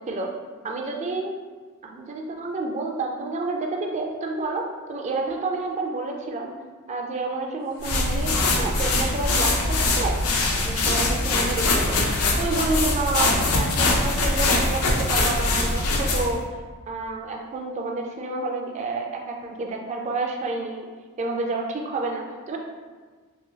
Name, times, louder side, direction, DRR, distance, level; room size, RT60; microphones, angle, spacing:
voice 1, 0.6-1.3 1.8-6.6 6.9-10.2 10.5-12.0 12.4-16.4 16.9-20.9 21.2-22.6, right 3 dB, 30° right, 1 dB, 0.3 m, -29 dB
sound 1, 7.6-12.4, left 1 dB, 90° left, 1.1 m, -41 dB
sound 2, 7.8-16.4, left 2 dB, 70° left, 0.5 m, -22 dB
2.9 x 2.6 x 2.7 m, 1.5 s
head